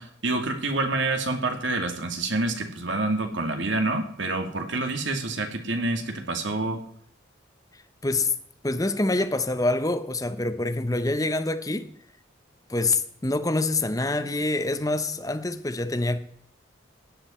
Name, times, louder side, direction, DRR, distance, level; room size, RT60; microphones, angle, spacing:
voice 1, 0.0-6.8, right 2 dB, 75° right, 2.5 m, -27 dB
voice 2, 8.0-8.3 8.6-11.9 12.7-16.2, left 2 dB, 20° left, 0.9 m, -26 dB
16.5 x 10.5 x 4.4 m
head